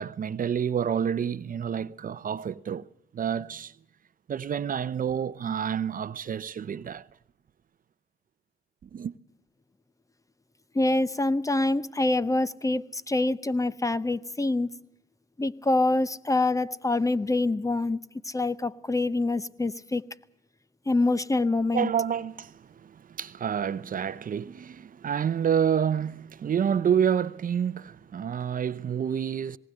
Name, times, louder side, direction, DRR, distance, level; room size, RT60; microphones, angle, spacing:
voice 1, 0.0-2.9 3.1-3.7 4.3-7.1 8.9-9.1 21.7-29.6, right 8 dB, 45° right, 0.7 m, -28 dB
voice 2, 10.7-14.7 15.4-18.0 18.2-20.0 20.9-21.9, left 2 dB, 15° left, 0.8 m, -25 dB
19.5 x 18.0 x 7.8 m
cardioid pair, 90°, 20 cm